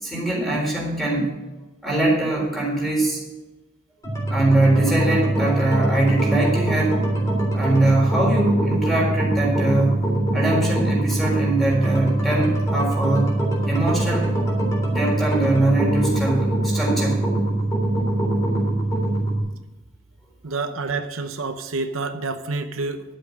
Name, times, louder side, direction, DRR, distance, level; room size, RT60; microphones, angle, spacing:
voice 1, 0.0-1.3 1.8-3.2 4.3-7.0 7.5-13.4 13.7-14.3 14.9-17.2, right 2 dB, ahead, -2 dB, 3.9 m, -22 dB
sound 1, 4.0-19.4, right 1 dB, 15° left, 3.5 m, -23 dB
voice 2, 20.4-23.0, right 3 dB, 80° right, 8 dB, 0.8 m, -28 dB
11.5 x 7.8 x 6.3 m, 1.1 s
head